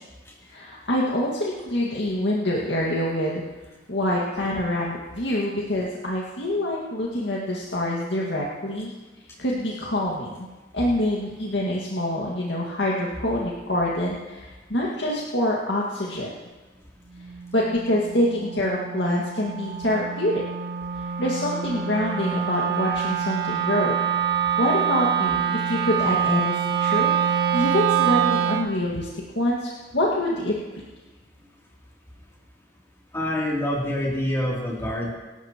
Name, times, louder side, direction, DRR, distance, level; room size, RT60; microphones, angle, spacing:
voice 1, 0.5-3.4 3.9-8.9 9.4-10.5 10.7-16.3 17.5-20.4 21.0-24.0 24.6-29.1 29.4-30.6, left 1 dB, 75° left, -4 dB, 2.0 m, -26 dB
Wind instrument woodwind instrument, 17.2-28.8, right 8 dB, 65° right, 1.2 m, -25 dB
voice 2, 33.1-35.1, left 1 dB, 15° left, -4 dB, 3.1 m, -26 dB
25.0 x 12.5 x 3.1 m, 1.2 s
head